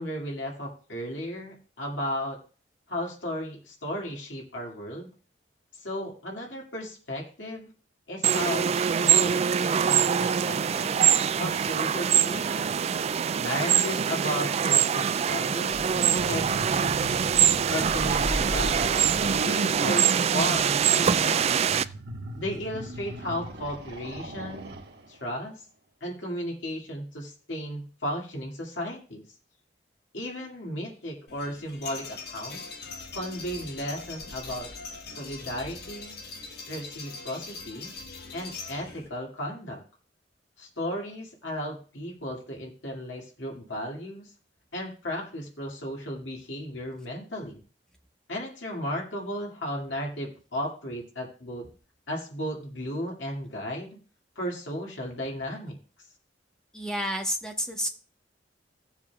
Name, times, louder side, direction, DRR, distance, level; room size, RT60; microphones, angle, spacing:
voice 1, 0.0-2.4 2.9-5.1 5.8-7.7 8.1-11.0 11.4-12.8 13.4-15.8 16.2-17.3 17.7-19.1 19.4-21.6 22.3-24.7 25.1-25.6 26.0-29.2 30.1-32.6 33.1-34.7 35.1-36.2 36.7-37.9 38.3-39.8 40.6-44.3 44.7-47.6 48.3-51.7 52.1-54.0 54.4-55.8, equal, 85° left, -1 dB, 2.4 m, -35 dB
sound 1, 8.2-21.9, right 8 dB, 35° right, 0.3 m, -24 dB
sound 2, 15.7-25.2, right 1 dB, 65° right, 1.3 m, -36 dB
sound 3, 31.3-39.1, left 4 dB, 60° left, 1.3 m, -41 dB
voice 2, 56.7-57.9, equal, 5° left, 2 dB, 1.2 m, -30 dB
16.0 x 7.1 x 2.4 m, 0.37 s
head